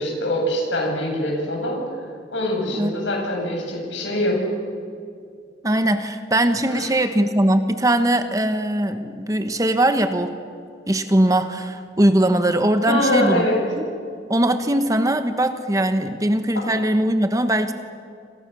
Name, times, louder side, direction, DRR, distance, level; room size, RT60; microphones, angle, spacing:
voice 1, 0.0-1.8 2.3-4.4 6.7-7.0 12.9-13.6 16.5-16.6, left 1 dB, 85° left, 1 dB, 7.9 m, -23 dB
voice 2, 5.6-10.3 10.9-13.5 13.8-13.9 14.3-17.7, right 1 dB, 20° right, 8 dB, 1.2 m, -20 dB
28.0 x 27.5 x 7.0 m, 2.4 s
head